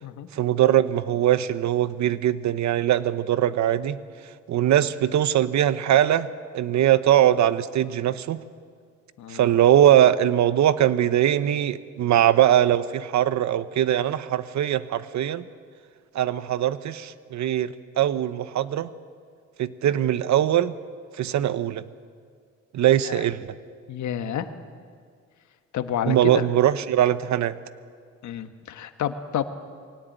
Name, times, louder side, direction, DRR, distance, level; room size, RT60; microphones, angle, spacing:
voice 1, 0.3-4.0 4.5-6.3 6.5-8.4 9.3-15.5 16.1-18.9 19.6-20.8 21.1-21.8 22.7-23.5 26.1-27.6, right 11 dB, 65° right, 15 dB, 1.0 m, -21 dB
voice 2, 23.9-24.5 25.7-26.5 28.2-29.4, left 9 dB, 70° left, 9 dB, 1.4 m, -29 dB
23.0 x 17.5 x 9.2 m, 2.1 s
cardioid pair, 90°, 30 cm